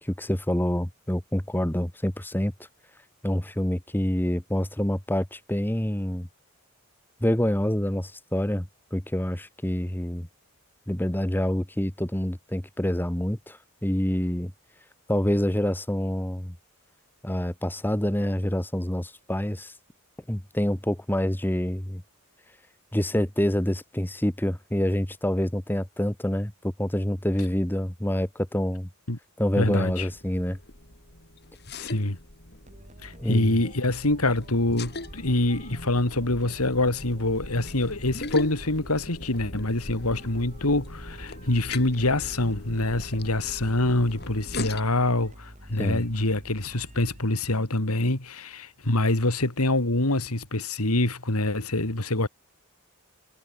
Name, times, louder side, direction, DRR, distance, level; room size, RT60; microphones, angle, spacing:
voice 1, 0.0-2.5 3.2-6.3 7.2-10.3 10.9-14.5 15.1-16.5 17.2-19.7 20.3-22.0 22.9-26.5 26.8-28.9 29.4-30.6 33.2-33.5 45.8-46.0, equal, 10° left, 1.2 m, -27 dB
sound 1, 29.5-44.8, left 2 dB, 45° left, 7.7 m, -40 dB
voice 2, 29.6-30.1 31.7-32.2 33.0-52.3, left 2 dB, 80° left, 3.0 m, -25 dB
sound 2, 32.7-47.6, right 1 dB, 30° right, 5.7 m, -48 dB
head